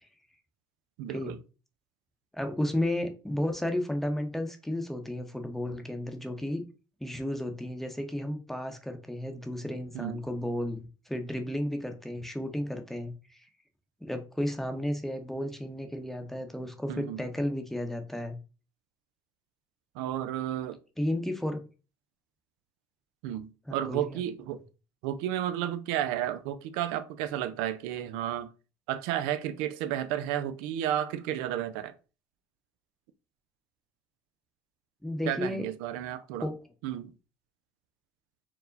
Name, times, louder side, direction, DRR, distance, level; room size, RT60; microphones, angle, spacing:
voice 1, 1.0-1.4 9.9-10.2 16.9-17.2 20.0-20.8 23.2-24.6 25.0-28.5 28.9-31.9 35.3-36.5 36.8-37.1, right 11 dB, 90° right, 0.4 m, -32 dB
voice 2, 2.3-6.6 7.0-13.5 14.0-18.4 21.0-21.6 23.7-24.2 35.0-35.7 36.4-36.5, left 1 dB, 5° left, 0.7 m, -33 dB
4.6 x 2.1 x 3.9 m
cardioid pair, 115°, 10 cm